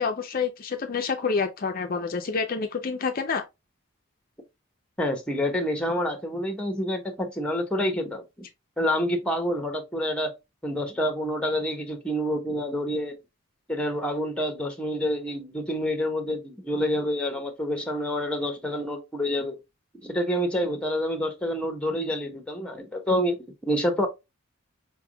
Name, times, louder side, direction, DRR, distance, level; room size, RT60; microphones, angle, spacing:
voice 1, 0.0-3.4, left 5 dB, 45° left, 0.5 m, -28 dB
voice 2, 5.0-8.2 8.8-10.3 10.6-13.2 13.7-19.6 20.0-24.1, equal, 5° left, 1.0 m, -27 dB
5.2 x 3.4 x 2.2 m
head